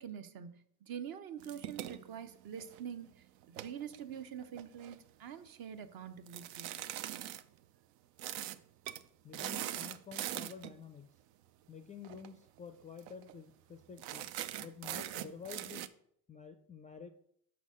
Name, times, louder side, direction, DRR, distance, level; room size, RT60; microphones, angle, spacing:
voice 1, 0.0-6.8, right 8 dB, 45° right, 0.8 m, -45 dB
sound 1, 1.4-2.9 3.4-5.0 6.3-7.4 8.2-8.6 8.8-9.0 9.3-10.7 12.0-12.3 12.6-12.7 13.0-13.3 14.0-15.9, right 12 dB, 75° right, 0.6 m, -42 dB
voice 2, 9.2-11.1 11.7-14.3 14.6-15.9 16.3-17.1, left 6 dB, 15° left, 0.3 m, -49 dB
5.7 x 4.0 x 6.2 m
supercardioid pair, 95°, 48 cm